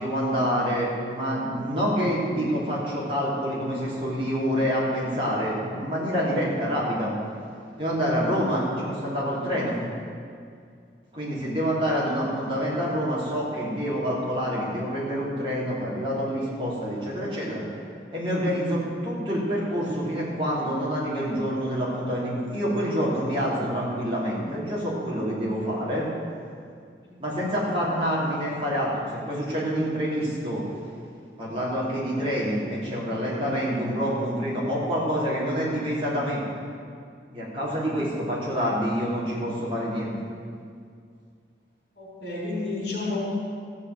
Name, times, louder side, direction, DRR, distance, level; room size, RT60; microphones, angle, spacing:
voice 1, 0.0-7.1 7.8-9.8 11.1-17.6 18.1-26.1 27.2-30.6 31.4-36.4 37.3-40.2, equal, 30° right, -7 dB, 3.2 m, -27 dB
voice 2, 42.0-43.2, left 3 dB, 60° left, -5 dB, 3.8 m, -31 dB
14.5 x 5.7 x 7.9 m, 2.3 s
head